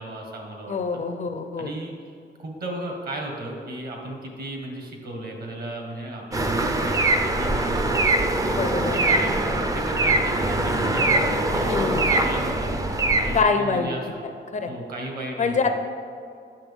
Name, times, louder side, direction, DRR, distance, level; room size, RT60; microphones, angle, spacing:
voice 1, 0.0-1.0 1.6-1.9 2.4-8.2 8.7-12.7 13.2-14.2 14.7-15.7, right 1 dB, 50° right, 1 dB, 1.4 m, -35 dB
voice 2, 0.7-1.7 8.5-9.0 11.7-12.1 13.3-13.9 14.5-14.7 15.4-15.7, left 5 dB, 40° left, 6 dB, 0.4 m, -24 dB
sound 1, 6.3-13.4, right 2 dB, 20° right, 0.4 m, -22 dB
8.7 x 6.6 x 3.5 m, 2.3 s
wide cardioid pair, 150°, 20 cm